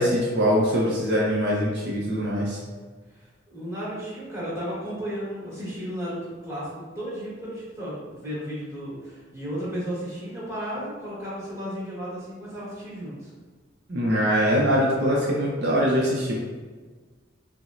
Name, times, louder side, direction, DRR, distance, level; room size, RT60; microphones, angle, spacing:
voice 1, 0.0-2.6 13.9-16.4, equal, 55° right, -5 dB, 0.6 m, -23 dB
voice 2, 3.1-6.7 6.9-13.3, equal, 15° right, -9 dB, 1.4 m, -34 dB
5.8 x 2.1 x 2.5 m, 1.4 s
head